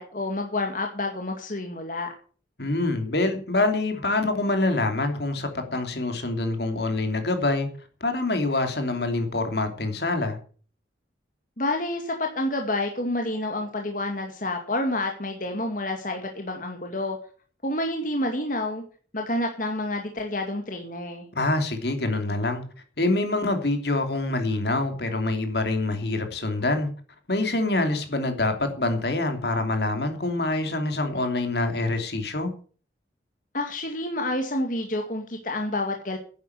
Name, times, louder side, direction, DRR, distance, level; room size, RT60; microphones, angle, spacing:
voice 1, 0.0-2.1 11.6-17.2 17.6-18.8 19.1-21.3 33.5-36.2, left 1 dB, 45° left, 3 dB, 2.1 m, -29 dB
voice 2, 2.6-7.7 8.0-10.4 21.4-22.6 23.0-26.9 27.3-32.5, left 2 dB, 65° left, 6 dB, 2.9 m, -25 dB
11.0 x 9.3 x 8.1 m, 0.42 s
head